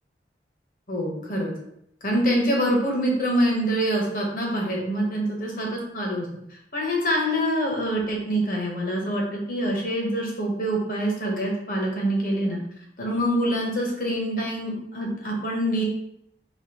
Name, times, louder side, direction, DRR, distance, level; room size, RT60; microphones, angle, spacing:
voice 1, 0.9-1.5 2.0-6.3 6.7-12.6 13.0-15.8, equal, 50° left, -1 dB, 0.8 m, -25 dB
3.4 x 2.8 x 2.8 m, 0.75 s
head